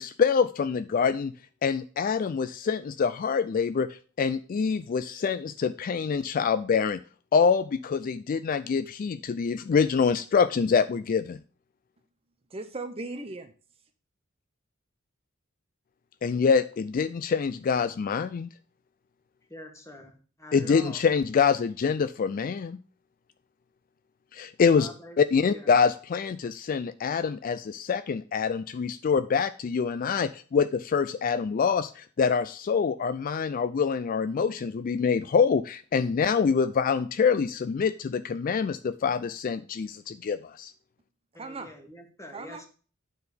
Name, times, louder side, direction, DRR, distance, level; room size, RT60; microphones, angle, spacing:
voice 1, 0.0-1.3 1.6-7.0 7.3-11.4 16.2-18.5 20.5-22.8 24.3-40.7, left 6 dB, 45° left, 0.3 m, -25 dB
voice 2, 12.5-13.5 41.4-41.7 42.3-42.6, right 3 dB, 30° right, 0.7 m, -37 dB
voice 3, 19.5-20.1 20.4-21.0 24.8-25.1 25.5-25.6 41.3-42.7, left 1 dB, 15° left, 1.6 m, -45 dB
9.6 x 4.0 x 6.8 m
head